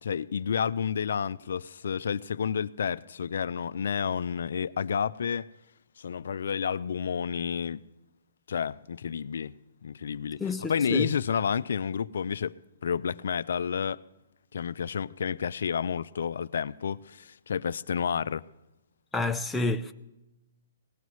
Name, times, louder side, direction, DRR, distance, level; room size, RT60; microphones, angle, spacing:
voice 1, 0.0-5.5 6.0-7.8 8.5-10.4 10.7-14.0 14.5-18.5, left 7 dB, 75° left, 0.4 m, -30 dB
voice 2, 10.4-11.1 19.1-19.9, left 2 dB, 5° left, 0.6 m, -29 dB
23.0 x 18.0 x 3.1 m
hypercardioid pair, 145°, 0 cm